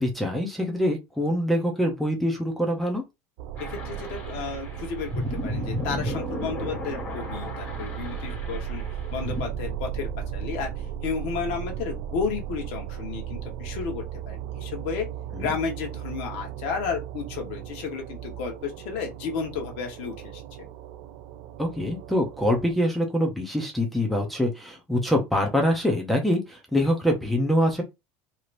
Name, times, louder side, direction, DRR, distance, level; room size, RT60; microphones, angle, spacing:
voice 1, 0.0-3.0 15.3-15.5 21.6-27.8, equal, ahead, 0.5 m, -24 dB
sound 1, 3.4-22.8, right 9 dB, 50° right, 0.4 m, -36 dB
voice 2, 3.6-8.8 9.1-15.1 15.4-20.7, left 6 dB, 60° left, 1.0 m, -32 dB
sound 2, 3.6-9.4, equal, 25° left, 1.5 m, -34 dB
3.2 x 2.8 x 2.5 m
cardioid pair, 180°, 7 cm